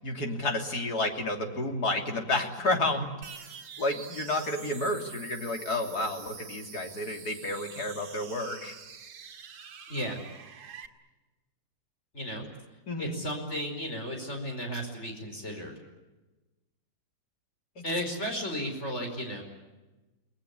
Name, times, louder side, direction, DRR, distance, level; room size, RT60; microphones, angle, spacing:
voice 1, 0.0-3.1 3.3-3.5 3.8-8.7 12.9-13.2 17.8-17.9, left 2 dB, 55° left, 3 dB, 3.7 m, -31 dB
sound 1, 3.2-10.9, right 6 dB, 85° right, 2.4 m, -46 dB
voice 2, 12.1-12.5 13.0-15.8 17.8-19.4, equal, 35° left, 2 dB, 5.2 m, -34 dB
30.0 x 20.0 x 8.4 m, 1.1 s
omnidirectional pair, 2.0 m